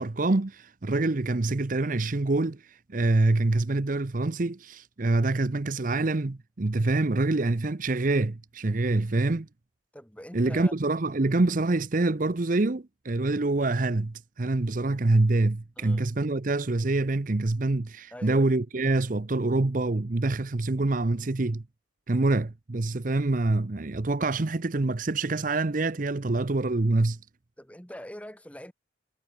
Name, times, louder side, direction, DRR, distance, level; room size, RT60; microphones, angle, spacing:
voice 1, 0.0-9.5 10.3-21.6 22.1-27.2, right 2 dB, 45° right, 0.7 m, -26 dB
voice 2, 9.9-10.7 15.8-16.1 18.1-18.5 22.1-22.4 27.6-28.7, equal, 5° left, 3.3 m, -44 dB
head